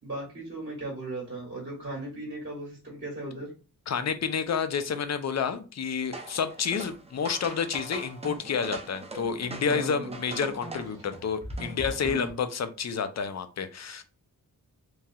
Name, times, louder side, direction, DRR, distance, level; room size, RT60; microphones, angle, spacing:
voice 1, 0.0-3.5 9.5-10.4 12.0-12.4, right 2 dB, 35° right, -4 dB, 1.5 m, -37 dB
voice 2, 3.9-14.0, left 6 dB, 50° left, 11 dB, 0.4 m, -30 dB
sound 1, 6.1-12.3, right 2 dB, 15° right, 0.6 m, -40 dB
3.0 x 2.6 x 2.3 m, 0.34 s
wide cardioid pair, 95°, 36 cm